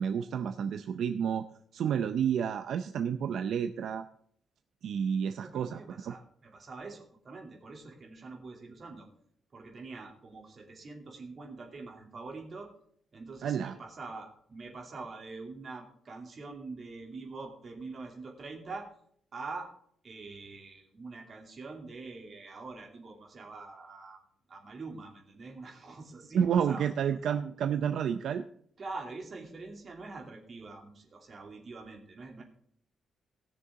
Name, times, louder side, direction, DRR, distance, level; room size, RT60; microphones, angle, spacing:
voice 1, 0.0-1.4 1.7-4.1 4.8-6.1 13.4-13.7 26.3-28.4, right 8 dB, 60° right, 8 dB, 0.5 m, -30 dB
voice 2, 5.4-9.1 9.5-12.7 13.1-18.9 19.3-19.7 20.0-24.2 24.5-26.9 27.6-27.7 28.8-32.4, right 3 dB, 30° right, 0 dB, 2.7 m, -44 dB
19.0 x 6.7 x 3.7 m, 0.63 s
wide cardioid pair, 175°, 0 cm